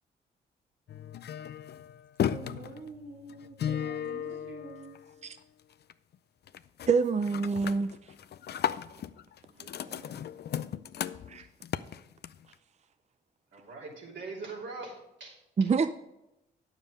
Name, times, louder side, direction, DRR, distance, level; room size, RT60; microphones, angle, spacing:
sound 1, 0.9-5.4 5.7-6.1 6.5-6.9 7.2-12.5, left 9 dB, 60° left, 0.5 m, -36 dB
voice 1, 2.3-5.0, right 3 dB, 90° right, -2 dB, 1.5 m, -46 dB
voice 2, 6.9-8.1 11.3-11.5 15.6-15.9, right 5 dB, 35° right, 11 dB, 0.5 m, -26 dB
voice 3, 9.5-10.2 11.0-11.5 13.5-15.9, right 3 dB, 70° right, -2 dB, 3.1 m, -44 dB
9.5 x 7.2 x 5.2 m, 0.91 s
supercardioid pair, 50°, 20 cm